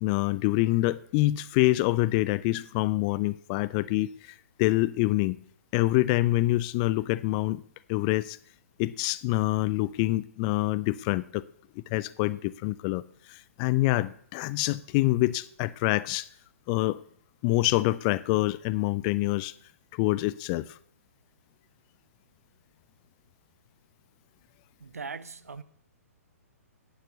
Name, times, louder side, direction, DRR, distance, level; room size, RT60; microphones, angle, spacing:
voice 1, 0.0-5.4 5.7-7.6 7.9-8.4 8.8-11.4 11.9-13.0 13.3-16.3 16.7-17.0 17.4-19.5 19.9-20.8, left 18 dB, 30° left, 0.4 m, -26 dB
voice 2, 24.8-25.6, right 5 dB, 70° right, 0.9 m, -39 dB
10.5 x 9.6 x 6.8 m
figure-of-eight pair, 120°, 8 cm